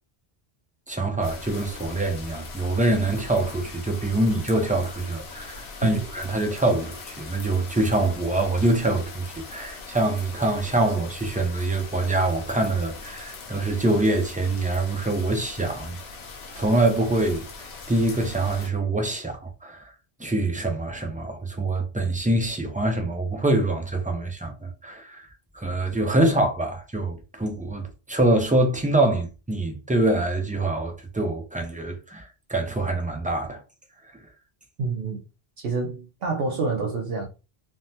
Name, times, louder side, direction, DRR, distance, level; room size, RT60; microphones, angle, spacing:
voice 1, 0.9-16.0 16.6-19.9 20.2-25.3 25.5-33.6 34.0-34.1, right 2 dB, 15° right, 0.3 m, -25 dB
sound 1, 1.2-18.7, left 3 dB, 85° left, 0.9 m, -41 dB
voice 2, 34.8-35.2 35.6-37.3, right 4 dB, 70° right, 0.8 m, -27 dB
3.4 x 2.0 x 2.7 m
omnidirectional pair, 1.0 m